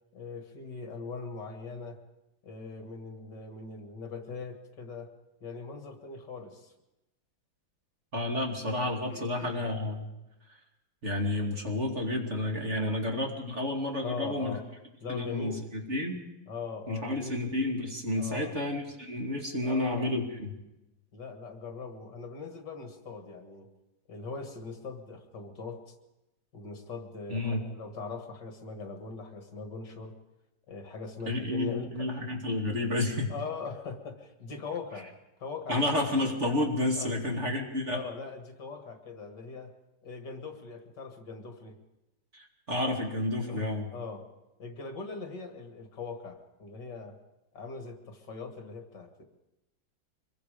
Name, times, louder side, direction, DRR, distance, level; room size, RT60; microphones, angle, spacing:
voice 1, 0.1-2.0 2.4-5.1 5.4-6.7 9.1-9.6 12.7-12.9 14.0-14.7 15.0-15.7 16.5-17.4 18.1-18.5 19.6-20.1 21.1-23.7 24.1-26.0 26.5-30.2 30.7-32.3 33.3-36.0 37.0-37.1 37.9-39.7 40.0-41.8 43.5-44.2 44.6-47.2 47.5-49.2, left 4 dB, 60° left, 5 dB, 2.5 m, -41 dB
voice 2, 8.1-10.1 11.0-14.6 15.1-15.5 15.9-16.2 16.9-20.6 27.3-27.6 31.2-33.3 35.7-38.0 42.3-43.9, left 1 dB, 35° right, 1 dB, 2.9 m, -30 dB
25.0 x 22.5 x 5.1 m, 0.96 s
omnidirectional pair, 2.2 m